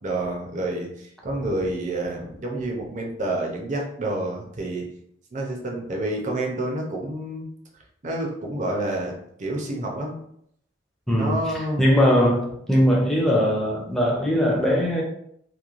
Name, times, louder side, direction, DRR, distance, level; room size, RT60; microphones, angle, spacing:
voice 1, 0.0-4.9 5.3-7.5 8.0-9.1 9.4-10.2 11.1-12.0, right 1 dB, 40° right, 0 dB, 0.5 m, -28 dB
voice 2, 11.1-15.0, equal, ahead, -3 dB, 0.5 m, -20 dB
3.0 x 2.2 x 2.4 m, 0.70 s
head